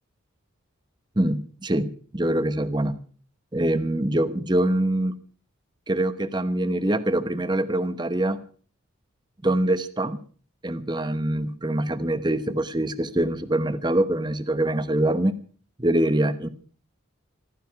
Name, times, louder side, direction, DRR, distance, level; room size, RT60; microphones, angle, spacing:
voice 1, 1.2-3.0 3.5-5.2 5.9-8.4 9.4-10.2 10.6-15.3 15.8-16.5, right 1 dB, 20° right, 12 dB, 0.9 m, -24 dB
15.0 x 14.0 x 5.8 m, 0.43 s
head